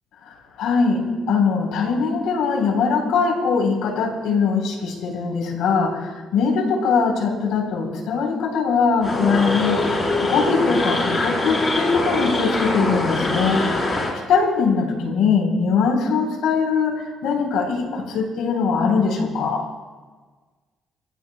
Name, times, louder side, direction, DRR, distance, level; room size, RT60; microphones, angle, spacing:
voice 1, 0.6-9.8 10.2-13.7 14.3-19.6, left 5 dB, 90° left, 1 dB, 3.6 m, -21 dB
sound 1, 9.0-14.1, left 2 dB, 30° left, 3.9 m, -23 dB
25.5 x 15.0 x 2.2 m, 1.4 s
cardioid pair, 90°, 0 cm